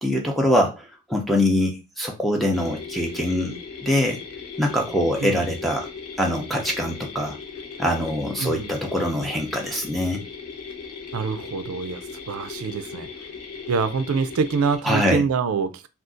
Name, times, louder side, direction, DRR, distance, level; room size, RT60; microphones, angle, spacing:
voice 1, 0.0-3.6 3.8-4.2 4.6-5.9 6.2-7.4 7.8-10.2 14.8-15.2, left 1 dB, ahead, 0.5 m, -23 dB
sound 1, 2.5-14.8, left 5 dB, 85° left, 0.8 m, -38 dB
voice 2, 11.1-13.1 13.7-15.9, right 5 dB, 70° right, 0.4 m, -25 dB
2.5 x 2.4 x 3.7 m
head